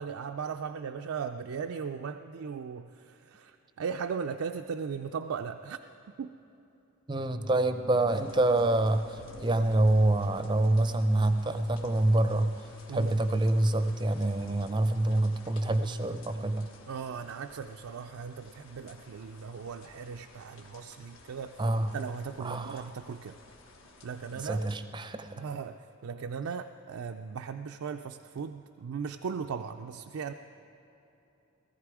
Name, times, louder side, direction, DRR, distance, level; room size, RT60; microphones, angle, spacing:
voice 1, 0.0-5.8 6.2-6.3 12.9-13.2 16.9-21.6 21.9-23.4 24.0-24.6 25.4-30.3, right 6 dB, 75° right, 6 dB, 0.4 m, -37 dB
voice 2, 7.1-12.6 12.9-16.7 21.6-21.9 22.4-22.9 24.4-25.4, right 2 dB, 20° right, 9 dB, 0.5 m, -26 dB
sound 1, 8.0-24.8, left 2 dB, 70° left, 1.3 m, -54 dB
18.5 x 14.5 x 4.8 m, 3.0 s
head